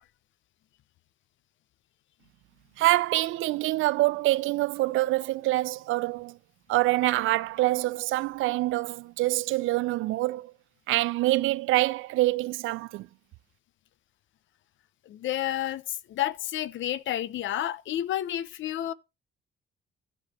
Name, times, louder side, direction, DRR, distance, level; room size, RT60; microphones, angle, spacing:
voice 1, 2.8-6.4 6.7-10.5 10.9-13.1, right 18 dB, 85° right, 0.4 m, -25 dB
voice 2, 15.1-18.9, left 12 dB, 75° left, 0.7 m, -30 dB
12.0 x 5.2 x 4.3 m
cardioid pair, 90°, 20 cm